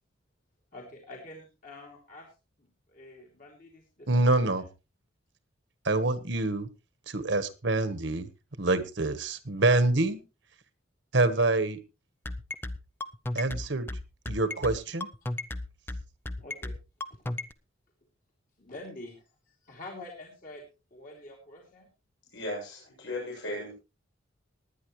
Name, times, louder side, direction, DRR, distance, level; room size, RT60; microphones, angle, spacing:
voice 1, 0.7-4.6 16.4-16.7 17.1-17.2 18.6-21.9, left 2 dB, 45° left, -1 dB, 3.0 m, -47 dB
voice 2, 4.1-4.6 5.8-6.7 7.1-8.3 8.6-10.2 11.1-11.8 13.3-13.9 14.3-15.1, right 2 dB, 65° right, 11 dB, 1.4 m, -26 dB
sound 1, 12.2-17.5, left 2 dB, 10° left, 0.6 m, -34 dB
voice 3, 22.3-23.7, left 1 dB, 70° left, -2 dB, 7.6 m, -36 dB
19.5 x 9.8 x 3.2 m, 0.29 s
head